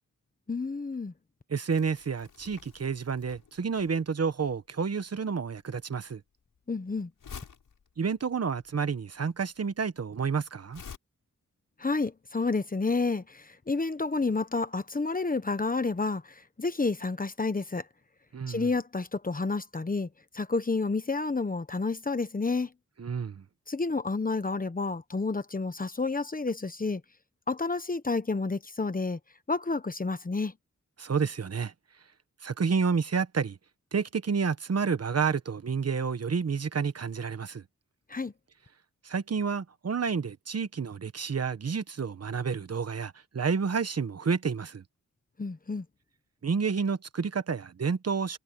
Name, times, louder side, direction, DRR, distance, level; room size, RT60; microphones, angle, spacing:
voice 1, 0.5-1.1 6.7-7.1 11.8-17.9 18.5-20.1 20.3-22.7 23.7-27.0 27.5-29.2 29.5-30.5 38.1-38.3 45.4-45.8, left 3 dB, 25° left, 1.2 m, -30 dB
voice 2, 1.5-6.2 8.0-10.8 18.3-18.7 23.0-23.4 31.0-31.7 32.4-33.6 33.9-37.6 39.0-44.8 46.4-48.4, right 5 dB, 50° right, 1.3 m, -30 dB
Crumpling crinkling, 1.7-11.0, left 6 dB, 80° left, 7.6 m, -50 dB
wide cardioid pair, 105°, 32 cm